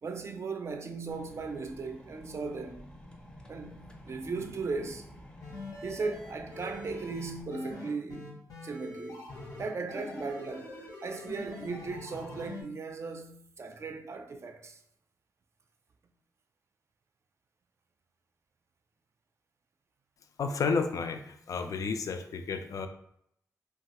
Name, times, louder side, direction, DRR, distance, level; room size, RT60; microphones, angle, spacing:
voice 1, 0.0-2.9 3.5-5.1 5.8-9.2 9.6-14.8, right 4 dB, 45° right, 0.4 m, -37 dB
sound 1, 1.1-7.4, equal, 15° left, 0.5 m, -50 dB
sound 2, 5.4-12.6, left 2 dB, 85° left, 1.0 m, -43 dB
voice 2, 20.4-22.9, left 5 dB, 65° left, 0.3 m, -31 dB
2.9 x 2.3 x 2.9 m
cardioid pair, 85°, 6 cm